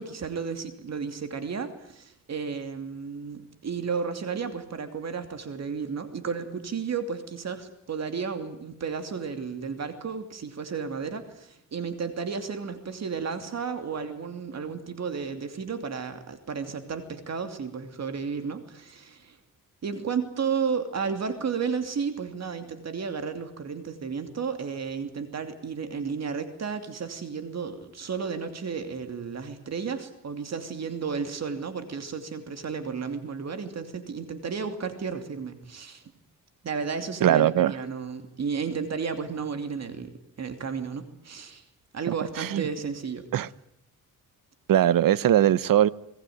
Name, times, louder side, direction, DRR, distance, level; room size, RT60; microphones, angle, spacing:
voice 1, 0.0-19.4 19.8-36.0 36.6-40.1 40.4-41.6 41.9-43.3, right 5 dB, 50° right, 2.8 m, -33 dB
voice 2, 37.2-37.7 42.4-42.7 43.3-43.5 44.7-45.9, right 11 dB, 70° right, 1.0 m, -20 dB
27.0 x 20.0 x 9.4 m
cardioid pair, 120°, 34 cm